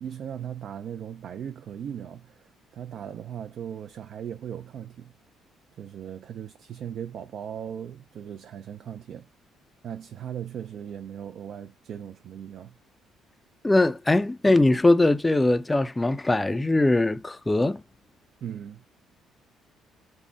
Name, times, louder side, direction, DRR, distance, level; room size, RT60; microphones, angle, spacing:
voice 1, 0.0-5.1 5.8-9.3 9.8-12.7 18.4-18.8, right 9 dB, 65° right, 0.4 m, -38 dB
voice 2, 13.6-17.8, left 2 dB, 15° left, 0.4 m, -21 dB
3.6 x 2.1 x 3.8 m
supercardioid pair, 65°, 0 cm